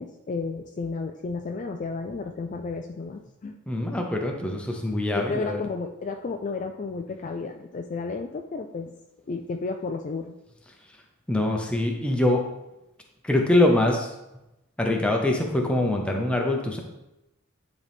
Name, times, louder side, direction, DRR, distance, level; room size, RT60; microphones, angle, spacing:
voice 1, 0.0-3.6 5.1-8.9 9.3-10.3, left 4 dB, 35° left, 4 dB, 0.3 m, -32 dB
voice 2, 3.7-5.6 11.3-12.4 13.2-14.1 14.8-16.8, left 1 dB, 5° left, 1 dB, 0.8 m, -23 dB
9.9 x 4.0 x 3.6 m, 0.94 s
head